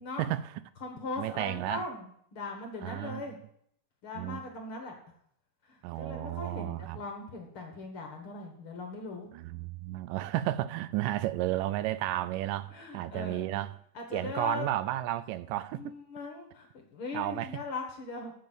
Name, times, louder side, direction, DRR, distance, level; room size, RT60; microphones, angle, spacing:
voice 1, 0.0-0.6 1.2-1.9 2.8-3.2 4.2-4.4 5.8-7.0 9.3-13.8 14.1-15.9 17.1-17.6, right 14 dB, 85° right, 2.2 m, -33 dB
voice 2, 0.8-3.4 4.0-5.0 5.7-9.3 12.7-13.6 13.9-14.7 15.7-18.3, left 3 dB, 50° left, 1.9 m, -40 dB
8.2 x 6.9 x 8.0 m
omnidirectional pair, 3.8 m